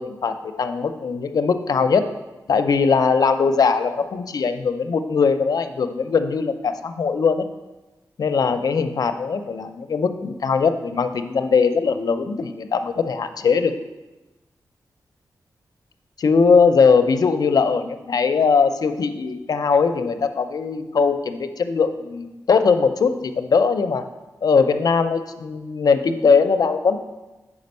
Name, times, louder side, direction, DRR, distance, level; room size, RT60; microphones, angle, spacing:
voice 1, 0.0-2.0 2.5-7.5 8.2-13.7 16.2-24.0 24.4-27.0, left 5 dB, 60° left, 8 dB, 0.4 m, -20 dB
5.1 x 4.9 x 5.3 m, 1.1 s
wide cardioid pair, 125°, 7 cm